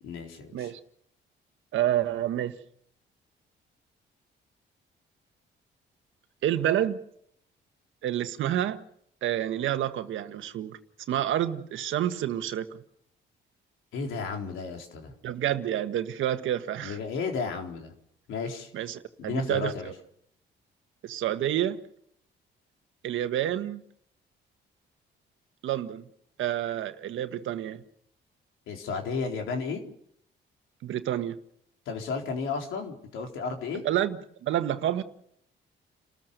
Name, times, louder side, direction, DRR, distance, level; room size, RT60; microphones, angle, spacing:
voice 1, 0.0-0.7 13.9-15.1 16.8-17.9 18.3-18.7 19.2-19.9 28.7-29.8 31.9-33.8, left 4 dB, 85° left, 4.0 m, -33 dB
voice 2, 1.7-2.6 6.4-7.0 8.0-8.8 9.2-10.8 11.1-12.8 15.2-17.0 18.7-19.9 21.0-21.8 23.0-23.8 25.6-26.1 26.4-27.8 30.8-31.4 33.8-35.0, right 11 dB, 80° right, 1.6 m, -29 dB
30.0 x 14.0 x 6.8 m
cardioid pair, 90°, 20 cm